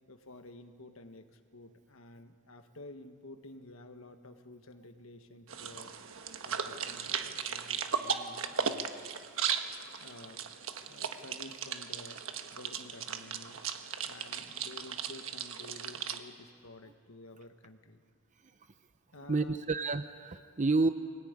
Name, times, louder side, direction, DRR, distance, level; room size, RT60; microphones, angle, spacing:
voice 1, 0.1-6.0 6.4-8.9 10.0-10.5 10.9-12.2 12.5-13.6 14.0-18.0 19.1-19.7, left 2 dB, 75° left, 7 dB, 1.6 m, -51 dB
sound 1, 5.5-16.2, right 7 dB, 70° right, 1.3 m, -37 dB
voice 2, 19.3-20.9, right 3 dB, 35° right, 10 dB, 0.6 m, -30 dB
24.0 x 19.0 x 9.7 m, 2.1 s
head